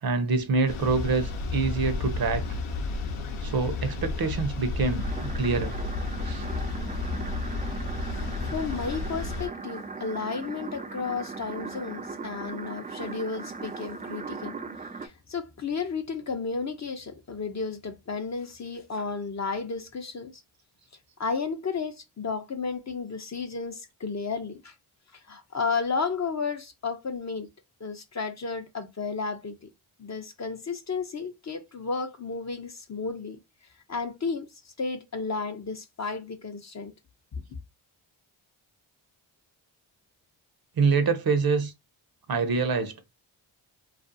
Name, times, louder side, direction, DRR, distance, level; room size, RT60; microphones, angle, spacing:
voice 1, 0.0-2.5 3.4-5.8 6.2-6.5 7.9-8.0 40.8-41.7 42.3-42.9, right 4 dB, 45° right, 0.6 m, -26 dB
sound 1, 0.7-9.5, left 3 dB, 75° left, 0.7 m, -32 dB
sound 2, 5.0-15.1, right 4 dB, 20° right, 0.3 m, -38 dB
voice 2, 8.1-14.6 15.0-20.4 21.2-24.7 25.3-27.5 27.8-29.7 30.0-33.4 33.9-36.9, left 4 dB, 35° left, 0.5 m, -33 dB
2.4 x 2.3 x 2.6 m
cardioid pair, 45°, 50 cm